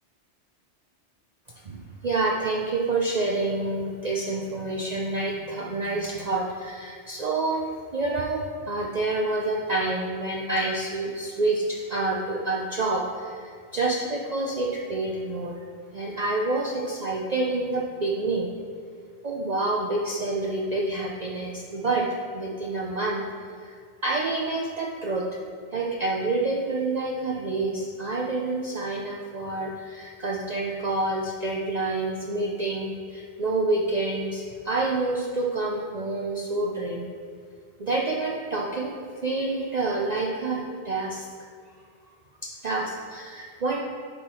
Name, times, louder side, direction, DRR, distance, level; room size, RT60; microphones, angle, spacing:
voice 1, 1.6-15.6 15.9-18.5 19.2-22.1 22.3-23.2 23.6-25.3 25.7-37.1 37.8-41.3 42.4-43.8, right 2 dB, 45° right, -3 dB, 0.7 m, -28 dB
10.0 x 4.4 x 4.3 m, 2.1 s
omnidirectional pair, 1.2 m